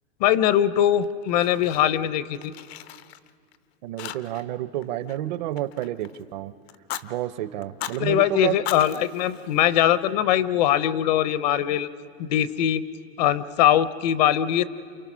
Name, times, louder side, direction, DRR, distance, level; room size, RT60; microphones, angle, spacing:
voice 1, 0.2-2.5 8.0-11.9 12.3-12.8 13.2-14.6, left 11 dB, 40° left, 15 dB, 0.6 m, -21 dB
Fire, 1.0-2.1 2.3-3.6 4.0-4.6 4.8-6.2 6.7-7.1 7.6-8.0 8.5-10.1, left 12 dB, 80° left, 0.9 m, -38 dB
voice 2, 3.8-6.5 7.0-8.6, right 14 dB, 45° right, 14 dB, 0.6 m, -30 dB
29.5 x 28.5 x 6.1 m, 2.1 s
supercardioid pair, 175°, 31 cm